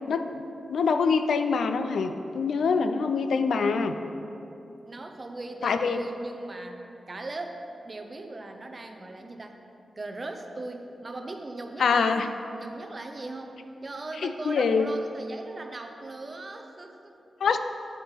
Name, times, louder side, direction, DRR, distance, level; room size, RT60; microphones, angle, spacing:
voice 1, 0.1-0.4 0.7-3.9 5.6-6.0 11.8-12.3 14.2-14.9 17.4-17.6, left 5 dB, 85° left, 8 dB, 0.4 m, -25 dB
voice 2, 4.8-9.6 10.0-17.2, right 2 dB, 30° right, 4 dB, 0.6 m, -39 dB
8.1 x 7.2 x 4.4 m, 2.9 s
wide cardioid pair, 145°, 0 cm